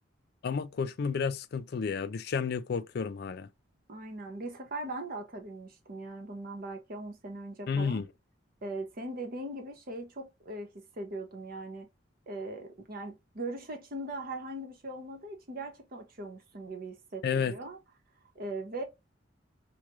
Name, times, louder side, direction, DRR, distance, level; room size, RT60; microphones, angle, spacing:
voice 1, 0.4-3.5 7.7-8.1 17.2-17.5, left 5 dB, 55° left, 0.4 m, -31 dB
voice 2, 3.9-8.0 8.6-11.9 12.3-17.8 18.3-18.8, right 2 dB, 50° right, 1.0 m, -40 dB
4.8 x 2.2 x 3.0 m
head